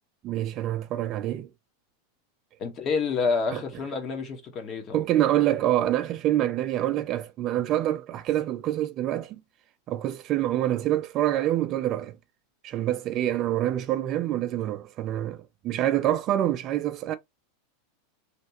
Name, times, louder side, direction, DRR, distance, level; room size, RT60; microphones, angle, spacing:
voice 1, 0.2-1.5 3.5-3.6 4.9-9.4 9.9-12.2 12.6-17.1, right 13 dB, 40° right, 0.4 m, -26 dB
voice 2, 2.6-5.0, left 4 dB, 35° left, 1.2 m, -28 dB
3.2 x 3.0 x 2.8 m
supercardioid pair, 135°, 0 cm